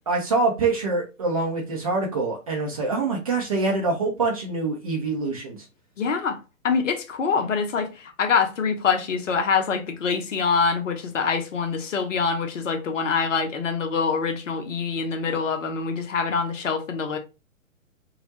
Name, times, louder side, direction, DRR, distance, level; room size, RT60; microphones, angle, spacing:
voice 1, 0.1-5.6, right 3 dB, 30° right, 0.4 m, -25 dB
voice 2, 6.0-6.4 6.6-17.2, left 5 dB, 65° left, 0.7 m, -25 dB
2.3 x 2.0 x 2.8 m
figure-of-eight pair, 120°, 41 cm